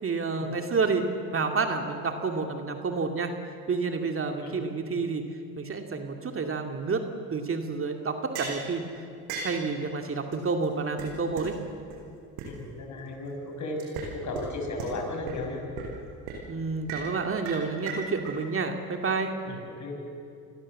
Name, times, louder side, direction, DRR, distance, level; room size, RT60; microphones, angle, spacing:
voice 1, 0.0-3.3 3.7-5.3 5.6-9.1 9.4-11.6 16.5-19.3, right 4 dB, 35° right, 4 dB, 2.3 m, -29 dB
sound 1, 8.3-8.6 9.3-9.6 10.3-10.4 10.6-10.7 11.0-11.1 11.4-11.5 11.9-12.0 12.4-12.5 13.8-14.1 14.3-14.4 14.8-14.9 15.3-15.4 15.8-16.0 16.3-16.4 16.9-17.1 17.4-18.3, right 5 dB, 85° right, 6.2 m, -36 dB
voice 2, 12.4-13.8 14.1-15.6 19.5-20.0, left 2 dB, 50° left, 2 dB, 6.7 m, -35 dB
27.5 x 21.0 x 7.6 m, 2.5 s
supercardioid pair, 85°, 37 cm